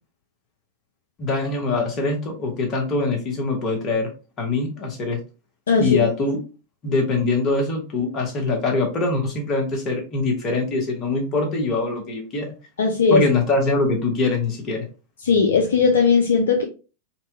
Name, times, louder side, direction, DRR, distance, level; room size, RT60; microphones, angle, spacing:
voice 1, 1.2-4.1 4.4-5.2 5.8-6.4 6.8-12.5 13.1-14.9, left 3 dB, 30° left, 1 dB, 0.8 m, -23 dB
voice 2, 5.7-6.1 12.8-13.2 15.2-16.6, left 5 dB, 65° left, 2 dB, 0.3 m, -18 dB
2.7 x 2.1 x 2.5 m, 0.33 s
figure-of-eight pair, 90°, 0 cm